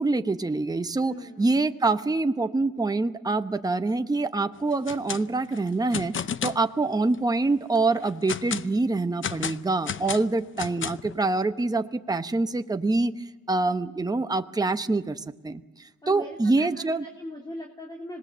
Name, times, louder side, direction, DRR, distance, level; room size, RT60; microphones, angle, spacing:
voice 1, 0.0-6.1 6.4-17.0, right 3 dB, 15° right, 9 dB, 0.9 m, -25 dB
voice 2, 1.0-1.5 16.0-18.2, left 1 dB, 15° left, 0 dB, 3.3 m, -40 dB
sound 1, 4.7-5.2 5.5-6.6 7.1-7.2 7.8-8.7 9.2-11.1, left 8 dB, 40° left, 0.8 m, -32 dB
26.0 x 19.5 x 7.5 m, 1.2 s
cardioid pair, 90°, 30 cm